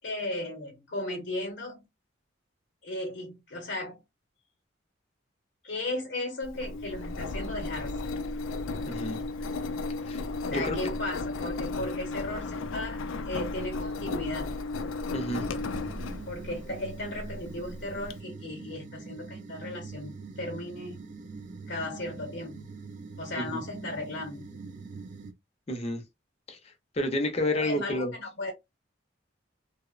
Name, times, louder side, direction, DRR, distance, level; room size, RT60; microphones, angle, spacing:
voice 1, 0.0-1.8 2.8-4.0 5.6-8.2 10.5-13.0 13.3-14.6 16.3-21.0 21.7-22.7 23.2-24.5 27.5-28.5, left 1 dB, 65° left, 0.8 m, -36 dB
Engine, 6.4-18.1, left 3 dB, 85° left, 0.4 m, -35 dB
voice 2, 8.9-9.2 10.0-10.2 10.5-10.8 15.1-15.5 23.4-23.6 25.7-26.0 26.5-26.6 26.9-28.1, left 1 dB, 30° left, 0.6 m, -30 dB
sound 1, 15.3-25.3, right 4 dB, 40° right, 0.3 m, -43 dB
2.8 x 2.0 x 2.3 m
head